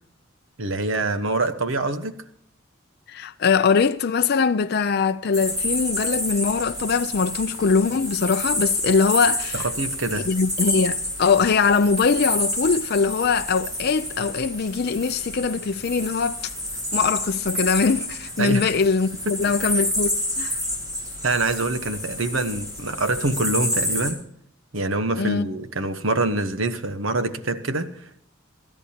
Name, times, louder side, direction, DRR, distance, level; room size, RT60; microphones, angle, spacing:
voice 1, 0.6-2.2 9.5-10.3 18.4-18.7 19.4-19.5 21.2-24.2 24.7-28.3, right 2 dB, 70° right, 1.2 m, -25 dB
voice 2, 3.1-9.7 10.1-16.5 16.9-20.6 25.1-25.5, left 5 dB, 50° left, 0.5 m, -22 dB
sound 1, 5.3-24.1, left 1 dB, 20° right, 5.6 m, -29 dB
25.5 x 13.0 x 2.9 m
head